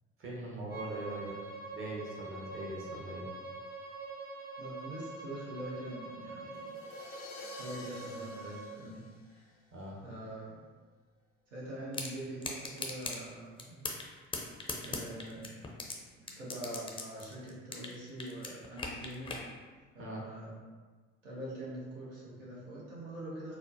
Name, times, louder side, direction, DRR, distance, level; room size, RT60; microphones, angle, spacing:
voice 1, 0.2-1.4 1.7-3.2 9.7-10.0 20.0-20.2, right 2 dB, 35° right, -4 dB, 1.1 m, -41 dB
Bowed string instrument, 0.7-8.7, right 2 dB, 60° right, 1.4 m, -45 dB
voice 2, 4.6-6.7 7.5-9.5 10.0-10.6 11.5-13.9 14.8-15.6 16.2-19.4 19.9-20.5 21.2-23.6, right 1 dB, 80° right, -6 dB, 1.0 m, -44 dB
sound 1, 6.5-9.8, left 4 dB, 90° left, 0.5 m, -51 dB
sound 2, 11.9-12.1 12.4-13.2 13.6-14.1 14.3-15.9 16.3-17.9 18.2-19.4, left 3 dB, 15° left, 0.5 m, -38 dB
4.3 x 2.1 x 2.5 m, 1.4 s
figure-of-eight pair, 55°, 36 cm